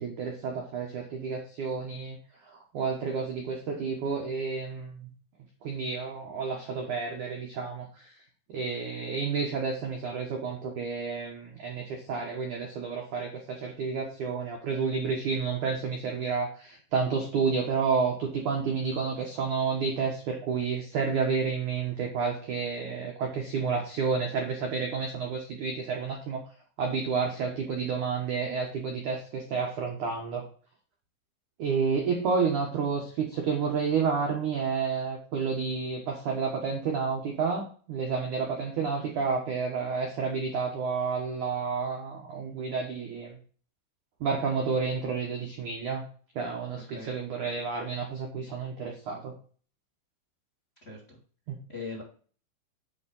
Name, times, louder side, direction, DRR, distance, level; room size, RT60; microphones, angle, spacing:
voice 1, 0.0-2.2 2.4-5.1 5.6-8.2 8.5-26.4 26.8-30.4 31.6-43.4 44.2-46.0 46.4-49.3 51.5-51.6, right 5 dB, 75° right, 1 dB, 1.8 m, -30 dB
voice 2, 38.9-39.3 46.7-47.1 50.8-51.2 51.7-52.0, left 3 dB, 25° left, -1 dB, 1.5 m, -41 dB
9.6 x 4.6 x 5.5 m, 0.42 s
omnidirectional pair, 5.7 m